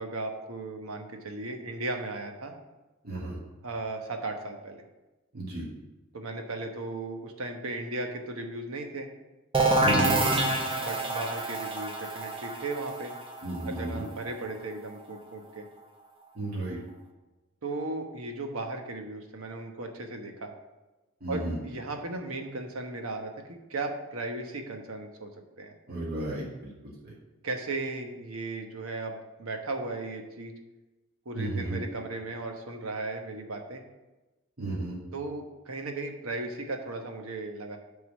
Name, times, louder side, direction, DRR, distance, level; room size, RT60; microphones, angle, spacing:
voice 1, 0.0-2.5 3.6-4.8 6.1-9.1 10.8-13.1 13.6-15.7 17.6-20.5 21.3-25.3 25.6-25.7 27.4-30.5 31.2-33.8 35.1-37.8, right 2 dB, 70° right, 4 dB, 1.1 m, -36 dB
voice 2, 3.0-3.4 5.3-5.7 9.8-10.2 13.4-14.1 16.4-16.8 21.2-21.6 25.9-26.7 27.0-27.1 31.3-31.8 34.6-35.0, right 2 dB, 45° right, -6 dB, 2.1 m, -33 dB
sound 1, 9.5-15.1, right 2 dB, 25° right, 0.8 m, -27 dB
9.4 x 3.8 x 6.2 m, 1.1 s
head